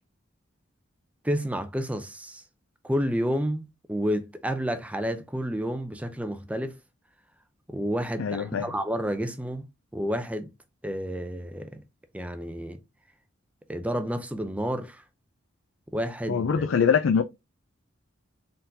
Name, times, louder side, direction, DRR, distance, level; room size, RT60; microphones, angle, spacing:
voice 1, 1.2-2.4 2.8-6.8 7.7-9.7 9.9-10.5 10.8-11.8 12.1-12.8 13.7-15.0 15.9-16.7, equal, 5° right, 0.5 m, -30 dB
voice 2, 8.2-8.7 16.3-17.2, left 6 dB, 75° left, 0.4 m, -23 dB
4.3 x 3.8 x 2.6 m
head